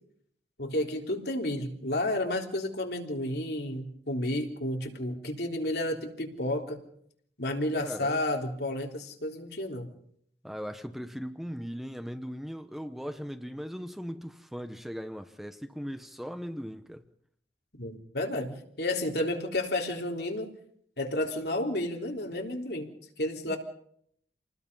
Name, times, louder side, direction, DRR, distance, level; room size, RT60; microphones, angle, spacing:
voice 1, 0.6-6.8 7.4-9.9 17.8-20.5 21.0-22.9 23.2-23.6, left 1 dB, 65° left, 3.8 m, -31 dB
voice 2, 7.7-8.2 10.4-17.0 23.5-23.6, equal, ahead, 1.0 m, -38 dB
28.5 x 20.0 x 5.6 m
head